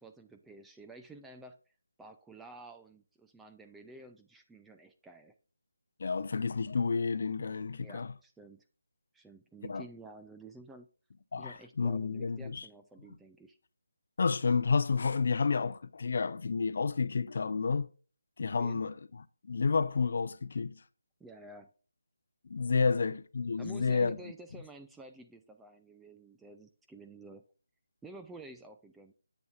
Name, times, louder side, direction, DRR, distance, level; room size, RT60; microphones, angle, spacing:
voice 1, 0.0-1.6 2.0-5.3 7.8-8.6 9.1-10.9 11.4-13.6 18.5-18.8 21.2-21.7 22.8-23.0 23.6-27.4 28.0-29.1, right 2 dB, 5° right, 0.4 m, -51 dB
voice 2, 6.0-8.1 9.7-9.8 11.3-12.7 14.2-17.9 18.4-18.9 19.5-20.8 22.5-24.2, left 5 dB, 50° left, 0.5 m, -30 dB
8.0 x 6.9 x 2.4 m
figure-of-eight pair, 170°, 0 cm